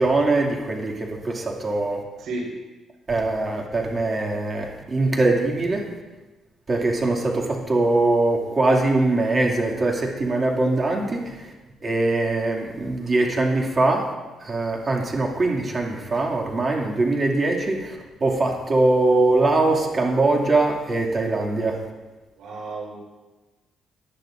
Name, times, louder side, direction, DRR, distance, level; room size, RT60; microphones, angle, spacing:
voice 1, 0.0-2.0 3.1-5.9 6.7-11.4 11.8-14.1 14.4-21.8, right 2 dB, 35° right, 0 dB, 2.4 m, -22 dB
voice 2, 2.2-2.5 22.4-23.0, right 2 dB, 80° right, 0 dB, 4.2 m, -32 dB
19.0 x 11.0 x 2.6 m, 1.2 s
cardioid pair, 90°, 0 cm